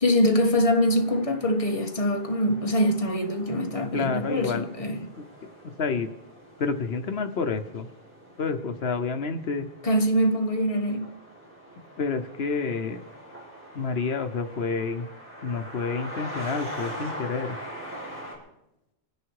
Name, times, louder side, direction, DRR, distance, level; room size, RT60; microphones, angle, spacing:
voice 1, 0.0-5.1 9.8-11.1, equal, 35° left, 1.6 m, -24 dB
sound 1, 0.6-18.4, equal, 10° right, 6.3 m, -43 dB
voice 2, 3.9-4.7 5.2-5.3 5.8-6.1 6.6-7.9 8.4-9.7 12.0-13.0 13.7-15.1 15.4-17.6, left 4 dB, 80° left, 1.2 m, -29 dB
26.5 x 10.0 x 4.7 m
omnidirectional pair, 1.0 m